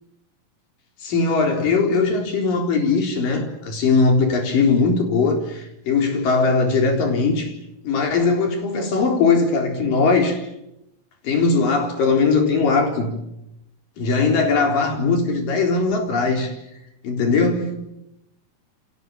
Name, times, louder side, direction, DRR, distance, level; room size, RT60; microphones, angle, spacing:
voice 1, 1.0-7.5 7.8-10.5 11.2-13.2 14.0-16.5 17.0-17.7, left 4 dB, 80° left, 5.6 m, -20 dB
29.0 x 26.0 x 7.3 m
omnidirectional pair, 3.9 m